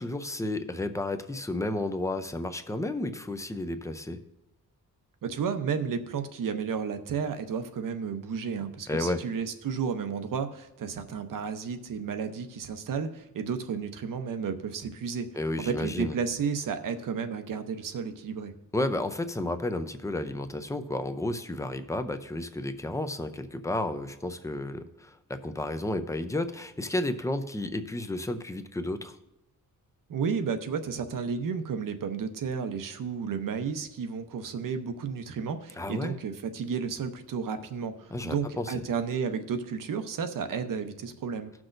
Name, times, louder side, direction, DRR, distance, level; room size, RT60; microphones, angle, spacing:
voice 1, 0.0-4.2 8.9-9.2 15.4-16.2 18.7-29.2 35.8-36.1 38.1-38.8, left 1 dB, 10° left, 8 dB, 0.5 m, -32 dB
voice 2, 5.2-15.3 15.6-18.5 30.1-41.5, right 6 dB, 70° right, 8 dB, 0.8 m, -32 dB
18.0 x 6.1 x 2.6 m, 0.95 s
wide cardioid pair, 140°, 34 cm